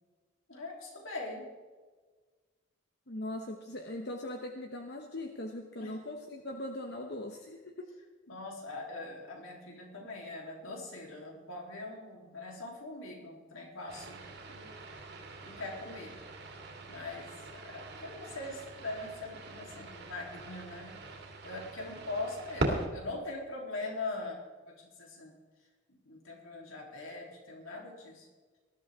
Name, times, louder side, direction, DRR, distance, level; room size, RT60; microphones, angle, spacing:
voice 1, 0.5-1.5 5.8-5.9 8.3-14.2 14.5-14.7 15.4-16.2 16.9-21.0 21.4-25.3 25.9-28.3, left 2 dB, 90° left, -1 dB, 3.5 m, -42 dB
voice 2, 3.1-7.9, left 1 dB, 55° left, 3 dB, 0.9 m, -40 dB
sound 1, 13.9-22.9, right 1 dB, 55° right, 2.4 m, -41 dB
19.5 x 12.5 x 3.7 m, 1.4 s
head